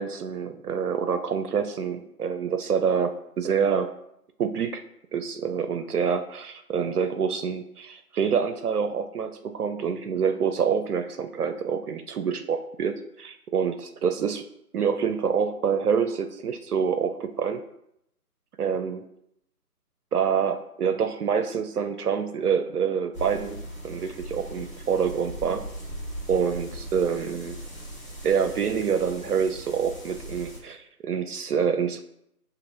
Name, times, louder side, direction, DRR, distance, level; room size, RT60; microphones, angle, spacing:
voice 1, 0.0-3.9 4.4-4.8 5.1-14.4 14.7-17.6 18.6-19.1 20.1-25.6 26.3-27.6 28.2-32.0, right 6 dB, 70° right, 8 dB, 0.5 m, -26 dB
sound 1, 23.1-30.6, equal, 30° left, 1.7 m, -39 dB
7.3 x 2.8 x 2.5 m, 0.77 s
figure-of-eight pair, 155°, 47 cm